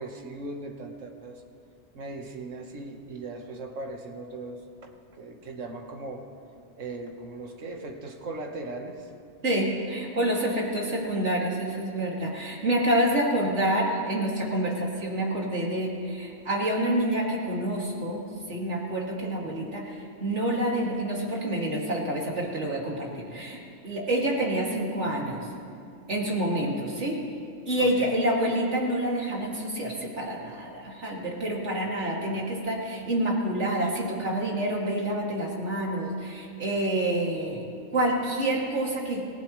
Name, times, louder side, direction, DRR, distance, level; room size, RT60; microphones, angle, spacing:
voice 1, 0.0-1.4 1.9-6.3 6.8-9.1 27.8-28.1, right 2 dB, 85° right, 4 dB, 1.6 m, -38 dB
voice 2, 9.4-25.5 26.1-27.2 27.7-37.6 37.9-39.2, right 1 dB, 65° right, -3 dB, 2.8 m, -28 dB
27.5 x 16.5 x 3.2 m, 2.5 s
omnidirectional pair, 1.3 m